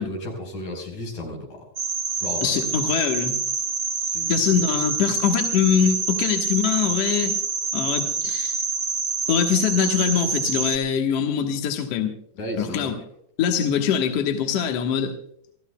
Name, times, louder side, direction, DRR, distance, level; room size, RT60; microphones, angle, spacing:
voice 1, 0.0-1.6 2.2-2.6 4.0-4.4 12.4-13.0, left 1 dB, 85° left, 1 dB, 6.4 m, -33 dB
sound 1, 1.8-10.8, right 5 dB, 50° right, 1.2 m, -26 dB
voice 2, 2.4-3.4 4.3-7.4 7.7-8.6 9.3-12.1 12.6-12.9 13.4-15.2, left 8 dB, 60° left, 3 dB, 2.2 m, -23 dB
29.5 x 14.5 x 2.3 m, 0.65 s
omnidirectional pair, 3.5 m